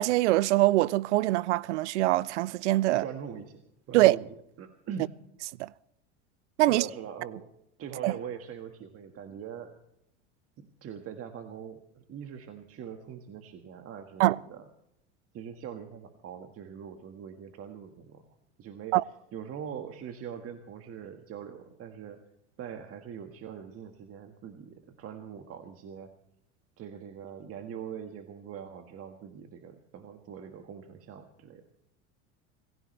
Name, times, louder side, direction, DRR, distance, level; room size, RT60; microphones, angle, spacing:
voice 1, 0.0-3.0 3.9-4.2 5.6-5.7 6.6-6.8 8.0-8.1 14.2-14.4 18.9-19.0, right 17 dB, 90° right, 0.5 m, -23 dB
voice 2, 3.0-3.6 3.9-4.3 4.6-5.1 6.7-7.5 7.8-9.7 10.8-14.6 15.3-18.2 18.6-19.0 19.3-22.2 22.6-26.1 26.8-31.6, right 8 dB, 40° right, 1.7 m, -42 dB
26.0 x 16.0 x 3.2 m
hypercardioid pair, 95°, 34 cm